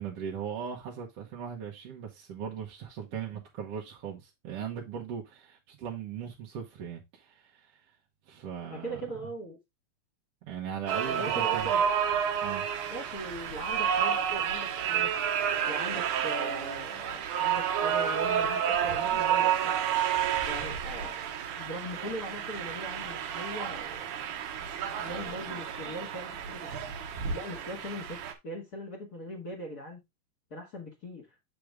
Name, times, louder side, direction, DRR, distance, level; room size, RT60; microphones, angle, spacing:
voice 1, 0.0-7.7 8.3-9.0 10.4-11.7 12.4-12.7, right 7 dB, 60° right, 1.9 m, -39 dB
voice 2, 8.7-9.6 11.0-11.9 12.9-15.1 15.7-19.7 20.5-21.2 21.5-24.1 25.0-26.9 27.3-28.2 28.4-30.0 30.5-31.3, equal, 35° left, 2.2 m, -40 dB
sound 1, 10.9-28.3, right 8 dB, 85° right, 2.4 m, -30 dB
7.7 x 4.9 x 3.4 m
omnidirectional pair, 3.4 m